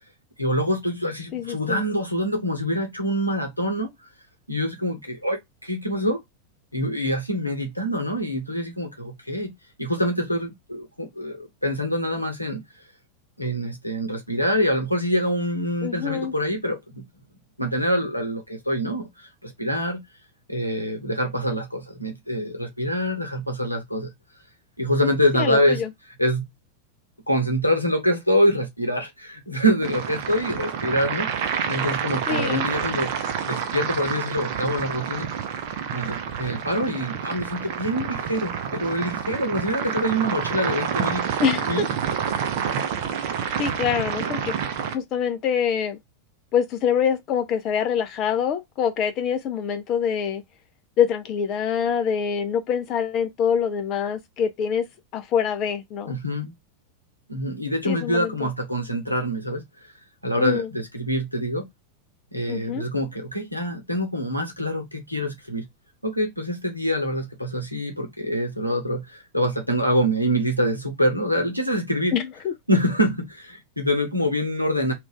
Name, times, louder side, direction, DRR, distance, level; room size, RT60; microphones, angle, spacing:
voice 1, 0.4-3.9 4.5-6.2 6.7-9.5 9.8-12.6 13.4-17.0 17.6-20.0 20.5-24.1 24.8-25.8 26.2-26.4 27.3-33.1 33.4-35.3 35.9-41.4 41.7-41.9 56.1-56.5 57.3-59.6 60.2-61.7 62.3-65.7 66.0-72.1 72.7-74.9, equal, 90° left, 0.8 m, -25 dB
voice 2, 1.3-1.8 15.8-16.3 25.3-25.9 32.3-32.7 41.4-41.9 43.6-44.5 44.9-46.0 46.5-50.4 51.0-54.8 55.1-56.2 57.8-58.5 60.4-60.7 62.5-62.9 72.1-72.5, left 8 dB, 35° left, 0.4 m, -25 dB
sound 1, 29.8-44.9, right 8 dB, 50° right, 0.6 m, -28 dB
2.4 x 2.4 x 3.6 m
figure-of-eight pair, 90°, 0 cm